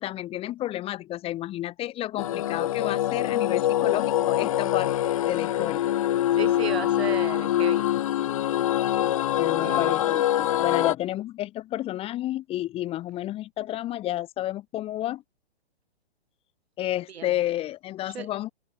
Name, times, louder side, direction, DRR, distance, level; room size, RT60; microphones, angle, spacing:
voice 1, 0.0-4.9 5.3-5.8 9.4-15.2 16.8-18.5, left 14 dB, 20° left, 1.4 m, -31 dB
sound 1, 2.2-10.9, left 12 dB, 35° left, 0.4 m, -24 dB
voice 2, 6.4-7.9 9.6-10.0 17.1-17.4 18.1-18.3, right 7 dB, 70° right, 4.2 m, -35 dB
hypercardioid pair, 140°, 32 cm